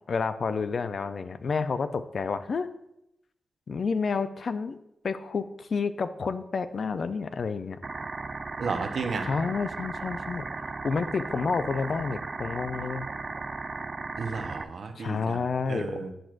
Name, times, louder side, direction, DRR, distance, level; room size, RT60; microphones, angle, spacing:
voice 1, 0.1-2.7 3.7-4.8 5.0-7.8 9.3-10.5 10.8-13.1 15.0-16.0, left 5 dB, 60° left, 11 dB, 0.4 m, -29 dB
sound 1, 7.8-14.6, right 3 dB, 40° right, 0.3 m, -36 dB
voice 2, 8.6-9.3 14.2-16.1, right 4 dB, 70° right, 6 dB, 0.7 m, -33 dB
10.0 x 6.0 x 2.4 m, 0.82 s
wide cardioid pair, 110°, 0 cm